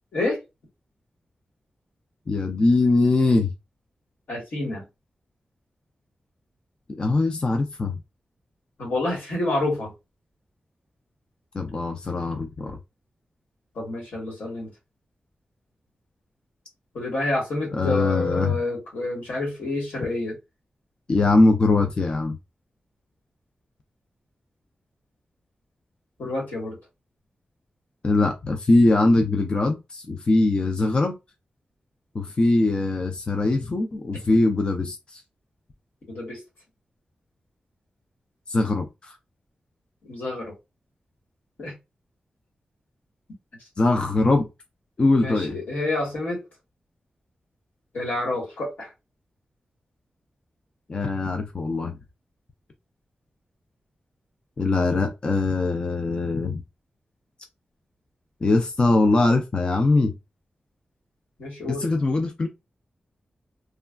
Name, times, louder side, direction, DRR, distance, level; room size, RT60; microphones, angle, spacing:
voice 1, 2.3-3.5 6.9-8.0 11.5-12.8 17.7-18.5 21.1-22.4 28.0-31.2 32.1-35.2 38.5-39.2 43.8-44.5 45.0-45.6 50.9-52.0 54.6-56.6 58.4-60.1 61.7-62.5, left 2 dB, 35° left, 0.4 m, -22 dB
voice 2, 4.3-4.8 8.8-9.9 13.7-14.7 16.9-20.4 26.2-26.8 36.1-36.4 40.0-40.5 41.6-41.7 45.2-46.4 47.9-48.9 61.4-61.8, left 2 dB, 85° left, 1.5 m, -28 dB
3.1 x 2.3 x 2.3 m
wide cardioid pair, 175°, 3 cm